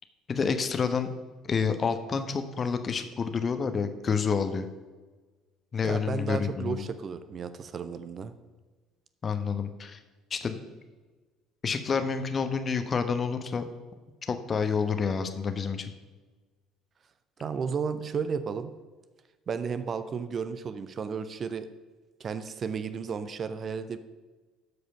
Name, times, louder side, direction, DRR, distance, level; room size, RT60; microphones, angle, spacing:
voice 1, 0.3-1.1 1.5-4.7 5.7-6.8 9.2-10.0 10.3-10.6 11.6-13.7 14.3-15.9, left 5 dB, 35° left, 8 dB, 1.0 m, -28 dB
voice 2, 5.8-8.3 17.4-18.7 19.5-21.7 22.2-24.0, right 6 dB, 40° right, 12 dB, 0.6 m, -33 dB
12.5 x 5.0 x 5.7 m, 1.3 s
figure-of-eight pair, 55°, 0 cm